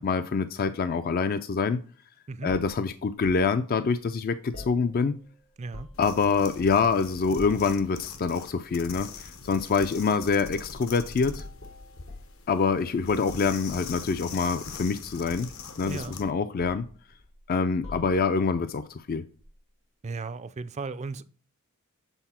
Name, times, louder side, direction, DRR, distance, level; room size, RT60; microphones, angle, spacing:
voice 1, 0.0-1.8 2.4-5.2 6.0-11.4 12.5-15.5 15.8-16.9 17.5-19.3, left 5 dB, 45° left, 0.4 m, -26 dB
sound 1, 2.5-3.5 4.5-5.3 5.5-6.1 6.6-6.9 7.3-7.8 8.9-9.2 9.7-10.0 10.4-10.7 11.3-12.8 13.1-14.0 14.7-15.5 15.8-16.1 16.6-17.4 17.8-18.4 19.4-19.5, left 2 dB, 90° left, 1.7 m, -45 dB
sound 2, 5.9-16.3, left 5 dB, 65° left, 0.9 m, -43 dB
voice 2, 20.0-21.3, right 3 dB, 30° right, 0.4 m, -35 dB
8.0 x 4.0 x 4.2 m
head